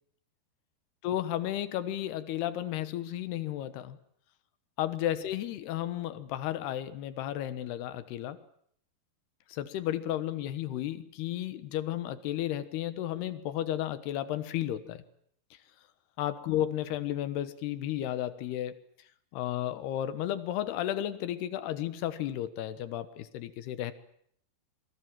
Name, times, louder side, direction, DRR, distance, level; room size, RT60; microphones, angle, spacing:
voice 1, 1.0-4.0 4.8-8.4 9.5-15.0 16.2-18.8 19.3-23.9, left 12 dB, 80° left, 13 dB, 3.2 m, -33 dB
27.0 x 22.0 x 7.5 m, 0.65 s
omnidirectional pair, 4.6 m